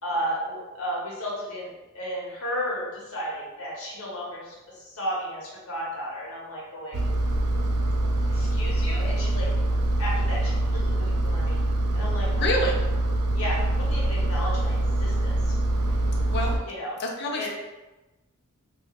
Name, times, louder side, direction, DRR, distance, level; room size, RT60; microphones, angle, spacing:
voice 1, 0.0-7.0 8.3-9.5 10.0-11.6 11.9-12.6 13.4-15.5 16.6-17.0 17.3-17.5, equal, 65° left, -5 dB, 0.9 m, -33 dB
Engine, 6.9-16.6, right 1 dB, 80° right, 0.4 m, -24 dB
voice 2, 12.4-12.7 16.3-16.5 17.0-17.5, left 1 dB, 50° left, 1 dB, 0.5 m, -26 dB
3.2 x 2.2 x 2.3 m, 1.1 s
head